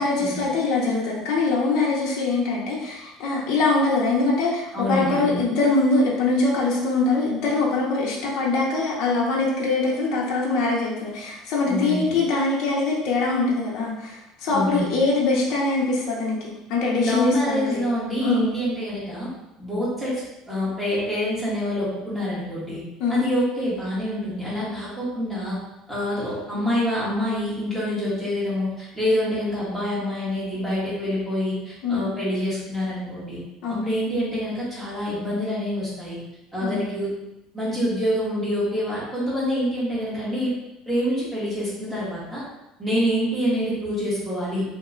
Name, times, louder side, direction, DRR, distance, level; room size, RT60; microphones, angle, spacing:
voice 1, 0.0-17.8 18.2-18.5 23.0-23.2 31.8-32.1 33.6-33.9 36.6-36.9, left 3 dB, 55° left, -4 dB, 0.6 m, -23 dB
voice 2, 4.7-5.4 11.7-12.2 14.5-15.0 17.0-19.3 19.6-20.2 20.5-22.8 23.1-25.6 25.9-33.4 33.8-36.2 36.5-37.1 37.5-40.5 40.9-42.4 42.8-44.6, equal, 10° right, -9 dB, 1.3 m, -26 dB
2.9 x 2.2 x 3.7 m, 0.92 s
cardioid pair, 155°, 0 cm